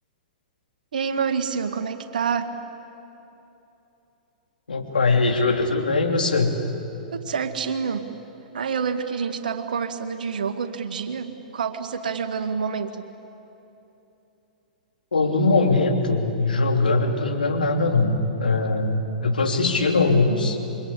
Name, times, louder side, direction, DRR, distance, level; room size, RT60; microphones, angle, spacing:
voice 1, 0.9-2.5 7.1-8.1 8.5-13.0, right 6 dB, 70° right, 8 dB, 2.0 m, -27 dB
voice 2, 4.7-6.5 15.1-20.6, left 3 dB, 80° left, 3 dB, 3.3 m, -21 dB
27.5 x 24.0 x 8.4 m, 2.9 s
figure-of-eight pair, 110°, 5 cm